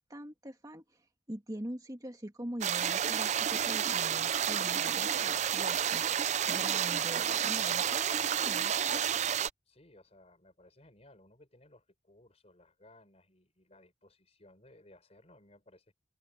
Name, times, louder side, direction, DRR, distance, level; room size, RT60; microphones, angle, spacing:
voice 1, 0.0-8.7, right 1 dB, 20° right, 1.9 m, -44 dB
sound 1, 2.6-9.5, right 9 dB, 40° right, 0.5 m, -30 dB
voice 2, 9.7-15.9, left 1 dB, 35° left, 5.4 m, -60 dB
open air
head